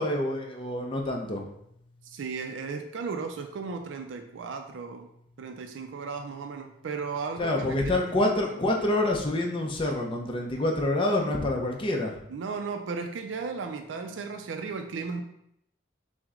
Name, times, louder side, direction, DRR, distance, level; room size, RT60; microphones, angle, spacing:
voice 1, 0.0-1.4 7.4-12.2, left 1 dB, 25° left, 1 dB, 0.6 m, -27 dB
voice 2, 2.0-5.1 5.4-8.6 12.3-15.2, right 5 dB, 75° right, 5 dB, 0.4 m, -35 dB
5.9 x 2.1 x 3.7 m, 0.76 s
head